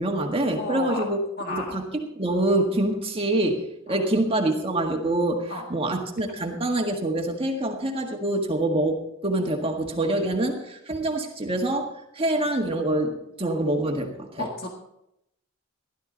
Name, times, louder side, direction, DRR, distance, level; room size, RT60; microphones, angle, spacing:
voice 1, 0.0-1.2 1.5-14.5, right 1 dB, 30° right, 2 dB, 1.7 m, -26 dB
voice 2, 0.5-1.0 1.4-1.8 3.9-4.0 5.5-5.6 14.4-14.7, left 2 dB, 50° left, 0 dB, 1.9 m, -32 dB
16.0 x 12.0 x 3.9 m, 0.80 s
head